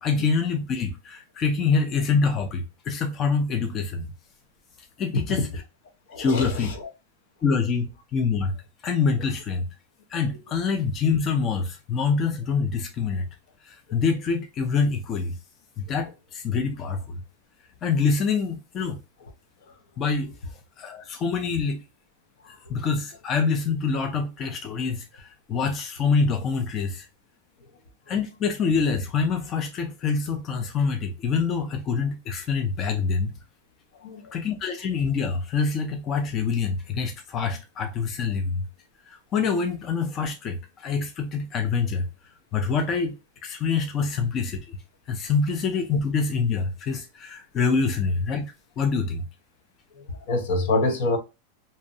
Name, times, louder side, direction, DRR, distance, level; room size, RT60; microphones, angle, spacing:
voice 1, 0.0-4.1 5.0-5.5 6.2-6.7 7.4-8.5 8.8-9.7 10.1-13.3 13.6-15.4 15.8-17.2 17.8-19.0 20.0-20.3 20.8-21.8 22.5-27.1 28.1-33.3 34.3-38.6 39.1-42.1 42.5-43.2 43.4-44.8 45.1-48.5 48.8-49.2, left 5 dB, 30° left, 0.4 m, -25 dB
voice 2, 6.1-6.9 22.4-22.5 34.0-34.4 50.0-51.2, left 2 dB, 70° left, 0.7 m, -26 dB
2.6 x 2.0 x 2.6 m
supercardioid pair, 150°, 0 cm